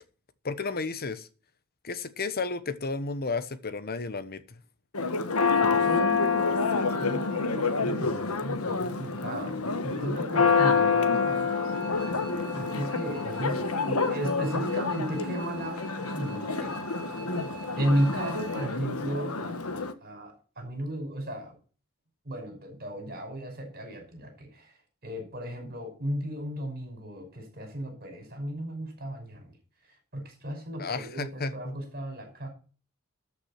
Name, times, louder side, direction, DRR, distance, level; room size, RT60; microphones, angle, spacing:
voice 1, 0.4-1.3 1.8-4.6 30.8-31.8, left 3 dB, 45° left, 13 dB, 1.1 m, -33 dB
Church bell, 4.9-19.9, left 4 dB, 70° left, 1.3 m, -28 dB
voice 2, 5.8-12.2 12.5-16.7 17.8-21.5 22.2-24.7 25.0-29.5 30.1-32.5, right 1 dB, 45° right, 4 dB, 5.8 m, -34 dB
sound 1, 11.5-18.7, right 4 dB, 25° right, 2.6 m, -46 dB
13.0 x 6.0 x 5.9 m, 0.37 s
head